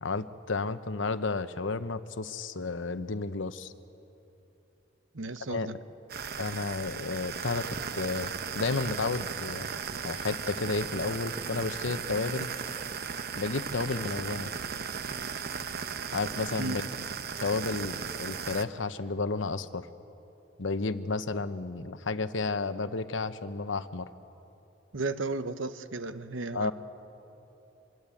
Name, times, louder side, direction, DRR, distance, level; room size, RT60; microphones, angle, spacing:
voice 1, 0.0-3.7 5.5-5.7 6.4-9.7 10.0-12.5 13.3-14.5 16.1-16.8 17.4-19.9 20.6-24.1 26.5-26.7, left 3 dB, 75° left, 12 dB, 0.9 m, -32 dB
voice 2, 5.1-5.8 16.6-16.8 24.9-26.7, right 3 dB, 85° right, 11 dB, 1.0 m, -34 dB
sound 1, 6.1-18.6, right 6 dB, 55° right, 0.9 m, -36 dB
24.5 x 23.0 x 8.5 m, 3.0 s
head